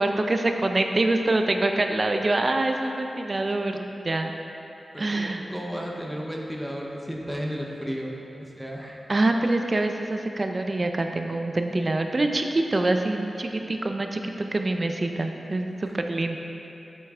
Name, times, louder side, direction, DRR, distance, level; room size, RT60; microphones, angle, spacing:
voice 1, 0.0-4.3 5.0-5.4 9.1-16.4, right 2 dB, 35° right, 5 dB, 0.5 m, -25 dB
voice 2, 4.9-8.1 8.4-9.0, equal, ahead, -1 dB, 0.7 m, -33 dB
8.3 x 7.6 x 3.6 m, 2.9 s
wide cardioid pair, 130°, 0 cm